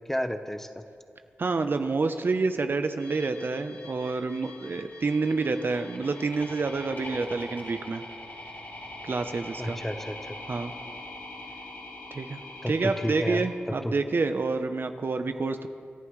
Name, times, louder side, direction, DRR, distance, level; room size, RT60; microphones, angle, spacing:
voice 1, 0.1-0.8 9.6-10.4 12.6-13.5 13.8-13.9, equal, 10° left, 8 dB, 1.0 m, -31 dB
voice 2, 1.4-8.0 9.0-9.8 10.5-10.7 12.1-12.4 12.7-15.7, right 3 dB, 55° right, 8 dB, 0.8 m, -28 dB
sound 1, 3.0-13.5, left 2 dB, 60° left, 4.1 m, -43 dB
27.0 x 11.0 x 3.2 m, 2.4 s
cardioid pair, 50°, 4 cm